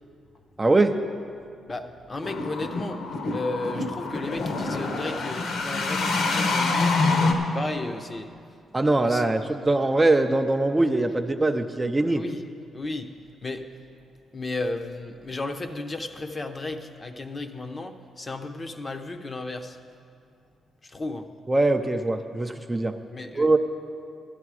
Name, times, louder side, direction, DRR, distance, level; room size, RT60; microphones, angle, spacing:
voice 1, 0.6-1.0 8.7-12.2 21.5-23.0 23.4-23.6, right 2 dB, 15° right, 6 dB, 0.4 m, -22 dB
voice 2, 1.7-7.0 7.5-8.3 9.0-9.5 12.0-12.4 12.7-13.1 13.4-13.7 14.3-19.8 20.8-21.3 23.1-23.6, left 2 dB, 25° left, 7 dB, 0.6 m, -34 dB
sound 1, 2.2-7.3, left 3 dB, 70° left, 1.1 m, -26 dB
13.0 x 10.0 x 4.8 m, 2.4 s
cardioid pair, 120°, 0 cm